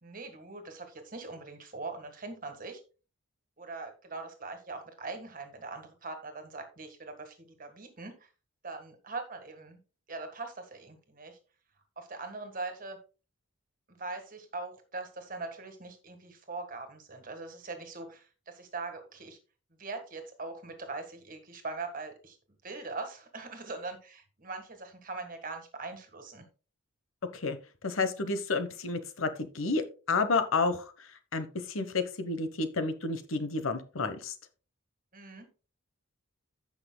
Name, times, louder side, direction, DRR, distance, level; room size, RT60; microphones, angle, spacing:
voice 1, 0.0-2.8 3.6-8.3 8.6-9.8 10.1-11.4 12.0-13.0 14.0-19.4 19.8-22.4 22.6-26.4 35.1-35.5, right 3 dB, 40° right, 6 dB, 1.6 m, -41 dB
voice 2, 27.8-29.3 29.5-34.3, left 3 dB, 75° left, 10 dB, 1.1 m, -31 dB
15.5 x 5.8 x 2.2 m, 0.34 s
head